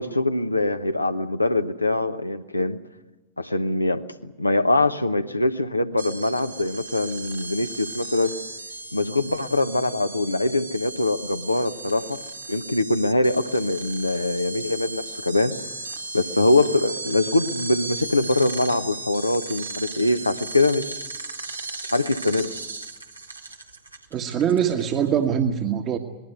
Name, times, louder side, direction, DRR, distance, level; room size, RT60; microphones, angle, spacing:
voice 1, 0.0-2.8 3.4-8.3 8.9-12.2 12.5-15.6 16.1-21.0 21.9-22.5, left 2 dB, 85° left, 8 dB, 1.1 m, -23 dB
sound 1, 6.0-25.1, right 3 dB, 80° right, 2.0 m, -36 dB
voice 2, 24.1-26.0, right 8 dB, 35° right, 4 dB, 1.5 m, -23 dB
26.5 x 20.5 x 8.2 m, 1.1 s
figure-of-eight pair, 90°, 0 cm